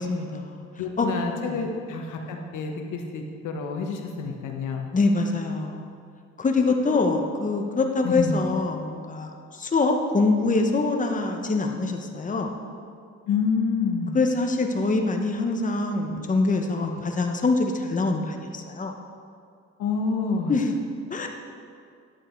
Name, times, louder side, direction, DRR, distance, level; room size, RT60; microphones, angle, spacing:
voice 1, 0.0-0.6 1.0-1.1 1.5-1.6 4.9-5.9 6.4-12.5 14.1-18.9 20.5-20.8 21.1-21.3, left 3 dB, 25° left, 3 dB, 1.0 m, -24 dB
voice 2, 0.8-4.8 8.0-8.3 13.3-14.1 16.8-16.9 19.8-20.5, left 5 dB, 80° left, 2 dB, 1.2 m, -28 dB
10.5 x 7.9 x 4.5 m, 2.3 s
cardioid pair, 90°, 30 cm